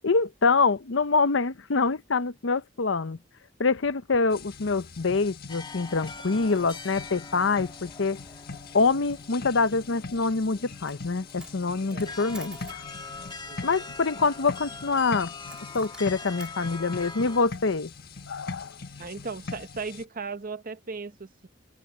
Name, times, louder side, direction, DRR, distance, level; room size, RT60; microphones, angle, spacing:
voice 1, 0.0-3.2 3.6-8.2 8.7-12.8 13.6-15.3 15.7-17.9 18.3-18.7, left 4 dB, 75° left, 0.8 m, -25 dB
sound 1, 4.3-20.0, left 4 dB, 50° left, 1.5 m, -42 dB
sound 2, 5.5-17.5, left 4 dB, 25° left, 2.0 m, -43 dB
Coin (dropping), 10.7-11.0 11.3-12.8 15.5-16.6, right 1 dB, 5° right, 2.0 m, -47 dB
voice 2, 13.5-13.9 19.0-21.5, right 4 dB, 45° right, 1.0 m, -37 dB
head